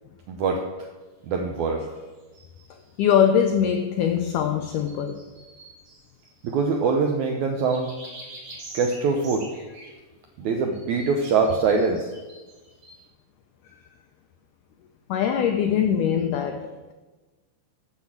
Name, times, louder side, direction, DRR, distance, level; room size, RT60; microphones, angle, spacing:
voice 1, 0.3-0.6 1.2-1.8 6.4-7.9 8.7-9.4 10.4-12.0, right 4 dB, 80° right, 1.7 m, -23 dB
sound 1, 2.2-2.9 4.6-6.9 7.6-9.9 10.7-13.0, right 2 dB, 45° right, 3.1 m, -45 dB
voice 2, 3.0-5.2 15.1-16.9, left 8 dB, 90° left, 1.8 m, -22 dB
7.9 x 6.4 x 7.1 m
omnidirectional pair, 4.3 m